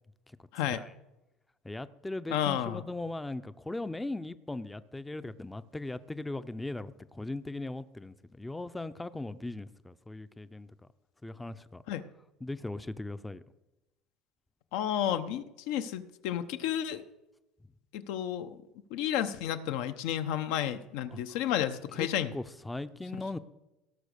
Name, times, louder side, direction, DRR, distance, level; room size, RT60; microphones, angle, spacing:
voice 1, 1.6-10.7 11.2-11.8 12.4-13.4 21.1-21.2 22.0-23.4, left 2 dB, 10° left, 13 dB, 0.5 m, -39 dB
voice 2, 2.3-2.8 11.9-12.0 14.7-17.0 17.9-18.6 18.9-22.3, left 10 dB, 80° left, 10 dB, 0.8 m, -31 dB
17.5 x 6.1 x 6.6 m, 0.97 s
cardioid pair, 125°, 0 cm